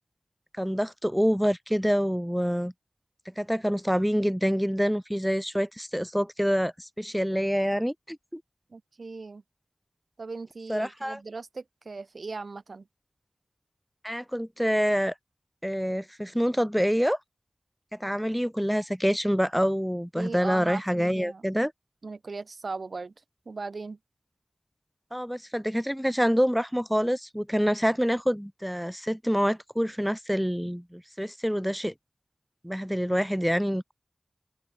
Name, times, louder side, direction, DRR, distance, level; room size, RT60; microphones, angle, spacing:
voice 1, 0.6-2.7 3.4-8.4 10.7-11.2 14.0-15.1 15.6-17.2 18.0-21.7 25.1-31.9 32.6-33.9, equal, ahead, 3.5 m, -26 dB
voice 2, 8.7-9.4 10.2-12.8 20.2-21.5 22.0-23.1 23.5-24.0, right 4 dB, 75° right, 7.5 m, -38 dB
wide cardioid pair, 50°, 0 cm